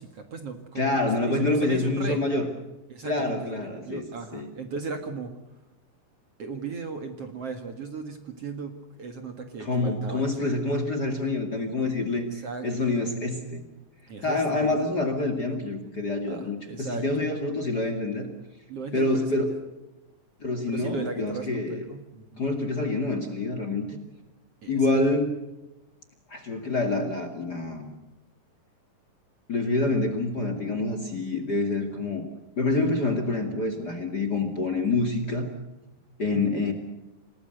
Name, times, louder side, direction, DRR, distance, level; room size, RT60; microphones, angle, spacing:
voice 1, 0.0-2.2 2.9-5.3 6.4-10.6 12.0-12.9 14.1-14.7 16.3-17.3 18.7-19.3 20.7-22.5 24.6-25.0 36.3-36.6, right 4 dB, 50° right, 7 dB, 2.4 m, -37 dB
voice 2, 0.7-2.5 3.0-4.0 4.3-4.5 9.6-13.7 14.2-18.3 18.9-19.5 20.4-21.8 22.4-24.0 24.7-25.3 26.3-27.9 29.5-32.2 32.6-35.5 36.2-36.7, left 2 dB, 30° left, 7 dB, 2.3 m, -27 dB
28.0 x 19.0 x 8.0 m, 0.99 s
omnidirectional pair, 4.2 m